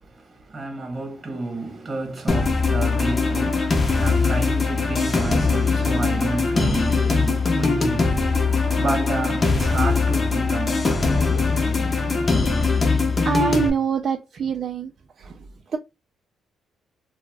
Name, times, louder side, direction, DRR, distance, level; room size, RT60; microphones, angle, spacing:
voice 1, 0.0-11.0, right 2 dB, 35° right, 1.0 m, -30 dB
sound 1, 2.3-13.7, left 4 dB, 30° left, 0.6 m, -21 dB
voice 2, 13.2-14.9 15.2-15.4 15.7-15.8, right 6 dB, 50° right, 0.3 m, -25 dB
2.3 x 2.1 x 3.3 m
cardioid pair, 90°, 0 cm